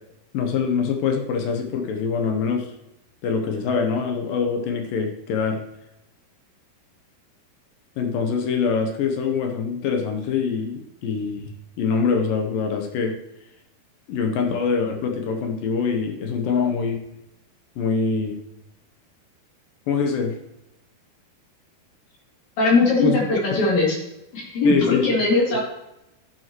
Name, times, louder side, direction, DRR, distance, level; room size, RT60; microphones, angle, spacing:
voice 1, 0.3-2.7 3.2-5.6 8.0-11.5 11.8-13.2 14.1-17.0 17.8-18.4 19.9-20.4 23.0-23.6 24.6-25.2 25.5-25.6, left 5 dB, 75° left, 4 dB, 2.3 m, -24 dB
voice 2, 22.6-24.0 24.3-25.6, left 3 dB, 50° left, -3 dB, 3.7 m, -20 dB
11.5 x 7.6 x 3.0 m, 0.88 s
omnidirectional pair, 4.5 m